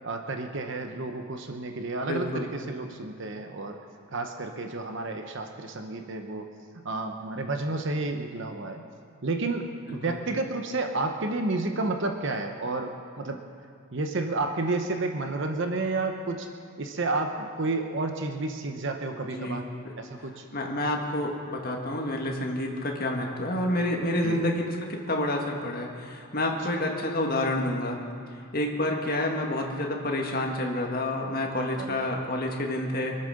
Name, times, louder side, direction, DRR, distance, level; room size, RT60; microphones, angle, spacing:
voice 1, 0.0-3.8 4.1-6.4 6.8-8.8 9.2-13.4 13.9-16.5 16.8-19.6 20.0-20.5 24.2-24.4 26.7-26.8 31.8-32.1, right 2 dB, 55° right, 5 dB, 0.9 m, -31 dB
voice 2, 2.1-2.4 9.9-10.2 19.3-19.6 20.5-28.0 28.5-33.2, left 1 dB, 40° left, 0 dB, 1.9 m, -29 dB
24.0 x 8.4 x 6.5 m, 2.3 s
head